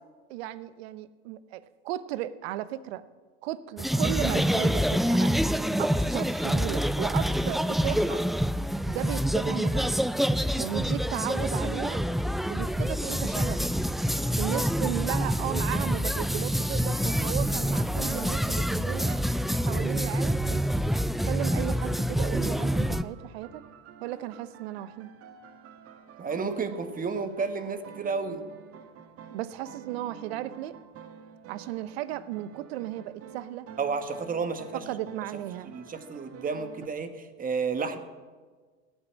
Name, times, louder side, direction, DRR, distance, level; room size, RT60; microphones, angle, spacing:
voice 1, 0.3-3.0 3.4-5.3 5.8-8.2 8.9-10.0 10.6-12.1 12.5-13.6 14.4-19.2 19.7-20.6 21.3-23.6 24.0-25.1 29.3-30.8 31.5-33.7 34.7-35.8, right 13 dB, 65° right, 16 dB, 0.9 m, -35 dB
sound 1, 3.8-23.0, equal, ahead, 0.3 m, -26 dB
sound 2, 22.6-36.9, right 7 dB, 45° right, 1.5 m, -49 dB
voice 2, 26.2-28.4 33.8-34.8 35.6-38.0, right 5 dB, 25° right, 9 dB, 1.5 m, -31 dB
16.5 x 9.2 x 7.5 m, 1.4 s
hypercardioid pair, 85°, 33 cm